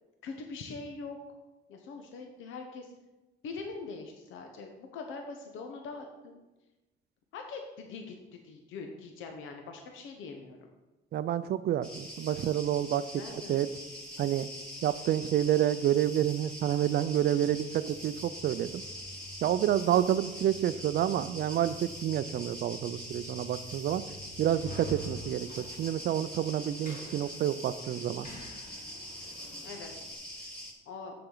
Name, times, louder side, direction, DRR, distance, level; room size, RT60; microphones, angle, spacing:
voice 1, 0.2-1.2 1.7-2.9 3.4-6.4 7.3-8.1 8.4-10.6 13.2-13.6 29.6-29.9 30.9-31.1, left 4 dB, 85° left, 3 dB, 0.8 m, -42 dB
voice 2, 11.1-13.1 13.3-13.7 14.2-14.5 14.8-18.8 19.4-24.0 24.4-28.3, right 11 dB, 55° right, 13 dB, 0.4 m, -29 dB
sound 1, 11.8-30.7, equal, 5° left, 2.2 m, -44 dB
sound 2, 17.4-30.2, left 1 dB, 40° left, 1.7 m, -49 dB
6.9 x 6.8 x 3.8 m, 1.1 s
cardioid pair, 90°, 20 cm